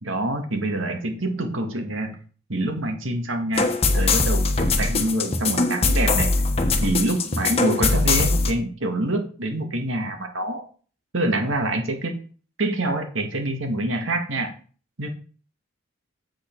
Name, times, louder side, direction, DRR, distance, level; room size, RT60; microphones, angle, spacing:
voice 1, 0.0-2.2 2.5-6.3 6.8-10.6 11.1-12.1 12.6-14.5 15.0-15.1, right 1 dB, 80° right, 5 dB, 1.9 m, -26 dB
sound 1, 3.6-8.5, left 3 dB, 30° left, 1.1 m, -21 dB
8.1 x 7.8 x 4.6 m, 0.41 s
head